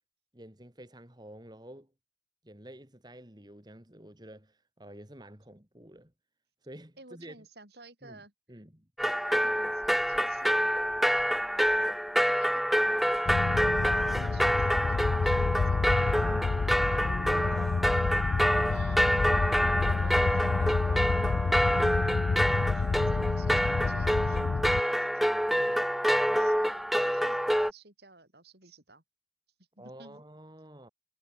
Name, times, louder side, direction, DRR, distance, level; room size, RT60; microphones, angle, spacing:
voice 1, 0.3-1.9 2.4-6.1 6.6-7.4 8.0-8.2 8.5-8.9 14.1-14.4 16.2-16.5 17.0-17.7 19.8-21.6 25.6-25.8 29.8-30.9, right 1 dB, 25° right, 2.9 m, -48 dB
voice 2, 7.0-8.3 9.0-10.8 11.4-11.9 12.2-13.8 14.2-15.9 18.7-19.1 22.7-25.8 26.2-29.0 29.8-30.2, right 2 dB, 65° right, 6.9 m, -54 dB
sound 1, 9.0-27.7, equal, ahead, 1.2 m, -27 dB
sound 2, 13.3-24.8, left 4 dB, 55° left, 0.4 m, -29 dB
head